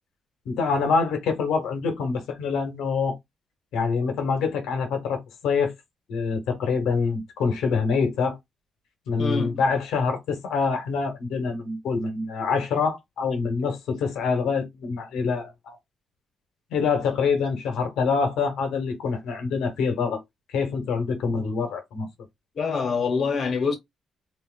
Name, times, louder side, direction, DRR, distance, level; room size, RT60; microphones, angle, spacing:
voice 1, 0.4-3.2 3.7-5.7 6.1-8.4 9.1-15.8 16.7-20.2 20.5-22.1, left 5 dB, 85° left, 1.3 m, -25 dB
voice 2, 9.2-9.6 22.5-23.8, left 5 dB, 60° left, 1.5 m, -25 dB
3.6 x 2.8 x 2.5 m
cardioid pair, 70°, 0 cm